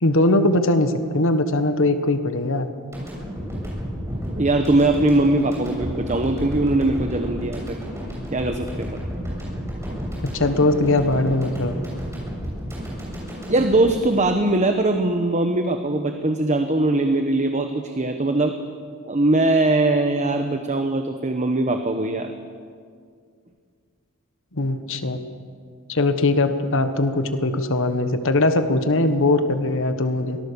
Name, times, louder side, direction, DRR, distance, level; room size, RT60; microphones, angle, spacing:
voice 1, 0.0-2.7 10.2-11.7 24.5-25.2 25.9-30.4, left 2 dB, 65° left, 9 dB, 1.4 m, -20 dB
sound 1, 2.9-15.1, equal, 15° right, 7.6 m, -31 dB
voice 2, 4.4-7.8 8.3-9.0 13.5-18.5 19.1-22.3, right 2 dB, 35° right, 6 dB, 1.1 m, -21 dB
24.0 x 18.5 x 7.0 m, 2.1 s
head